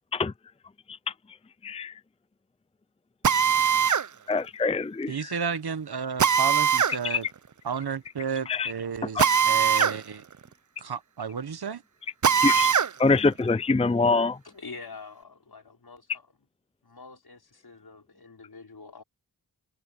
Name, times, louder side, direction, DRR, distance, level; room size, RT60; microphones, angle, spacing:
voice 1, 1.6-2.0 4.3-5.3 7.0-7.2 8.5-8.7 9.1-9.3 12.4-12.7 13.0-14.4, left 3 dB, 15° left, 0.5 m, -25 dB
Drill, 3.2-4.1 6.2-7.0 9.2-10.0 10.3-10.4 12.2-12.9, right 7 dB, 50° right, 0.7 m, -21 dB
voice 2, 5.1-7.3 7.6-10.2 10.8-11.8, right 6 dB, 75° right, 1.1 m, -32 dB
voice 3, 14.4-16.3 16.8-19.0, left 4 dB, 70° left, 5.6 m, -45 dB
cardioid pair, 40°, 39 cm